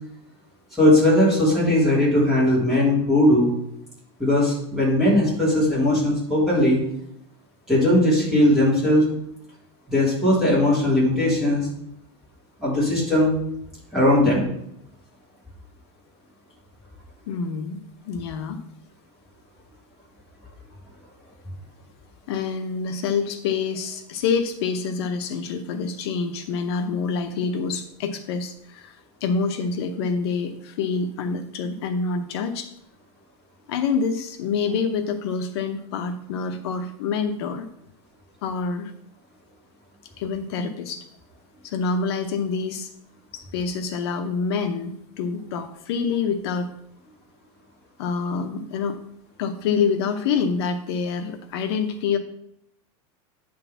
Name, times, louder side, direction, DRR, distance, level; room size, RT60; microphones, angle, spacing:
voice 1, 0.8-3.5 4.2-6.8 7.7-9.1 9.9-11.7 12.6-13.3 13.9-14.5, left 1 dB, 5° right, -8 dB, 3.5 m, -19 dB
voice 2, 17.3-17.8 18.1-18.6 22.3-32.7 33.7-37.7 38.4-38.9 40.2-41.0 41.6-42.9 43.3-46.7 48.0-49.0 49.4-52.2, left 5 dB, 65° left, 6 dB, 0.8 m, -26 dB
9.2 x 3.9 x 6.9 m, 0.73 s
supercardioid pair, 170°, 14 cm